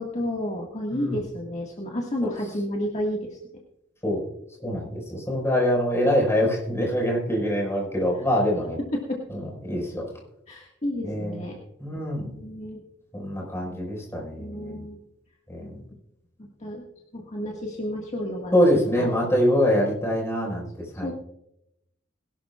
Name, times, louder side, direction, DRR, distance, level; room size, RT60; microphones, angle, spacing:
voice 1, 0.0-3.4 8.9-9.2 10.5-11.6 12.3-12.8 14.4-15.0 15.6-15.7 16.4-16.8 17.1-18.6 19.0-19.2 21.0-21.1, left 1 dB, 40° left, -1 dB, 1.8 m, -31 dB
voice 2, 4.6-8.8 9.3-10.1 11.0-11.4 11.8-12.3 13.1-14.8 15.5-15.7 18.5-20.7 21.0-21.1, equal, 15° left, -2 dB, 5.2 m, -24 dB
21.5 x 12.0 x 2.4 m, 0.82 s
head